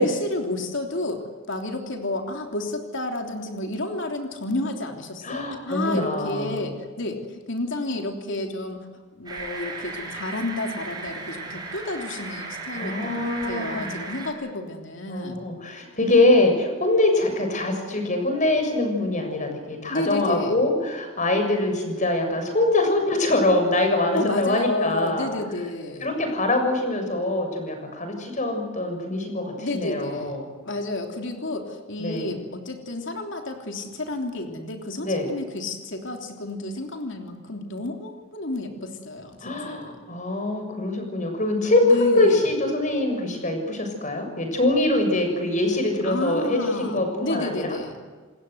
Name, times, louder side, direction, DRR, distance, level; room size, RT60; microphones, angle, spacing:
voice 1, 0.0-8.8 9.1-15.4 19.9-20.6 24.1-26.1 29.6-30.3 30.6-40.0 41.8-42.5 46.0-47.9, left 2 dB, 60° left, 4 dB, 3.3 m, -31 dB
voice 2, 5.2-6.7 12.7-14.0 15.1-25.3 26.0-30.4 32.0-32.4 35.0-35.3 39.4-47.8, left 2 dB, 35° left, 5 dB, 6.9 m, -23 dB
sound 1, 9.3-14.3, right 3 dB, 20° right, 6.0 m, -36 dB
28.5 x 21.0 x 8.1 m, 1.4 s
head